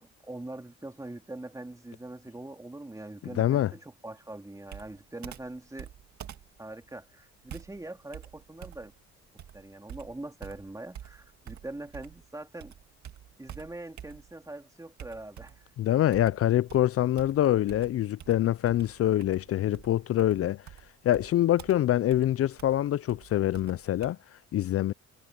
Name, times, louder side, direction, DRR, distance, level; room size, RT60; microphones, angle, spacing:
voice 1, 0.0-5.9 6.6-8.9 9.5-12.7 13.4-15.6, right 2 dB, 10° right, 3.0 m, -43 dB
voice 2, 3.4-3.7 15.8-20.6 21.0-24.2 24.5-24.9, left 12 dB, 50° left, 0.4 m, -25 dB
Computer keyboard, 4.7-12.3 12.6-14.5 15.0-15.7 16.1-24.1, right 10 dB, 65° right, 2.2 m, -48 dB
cardioid pair, 90°, 30 cm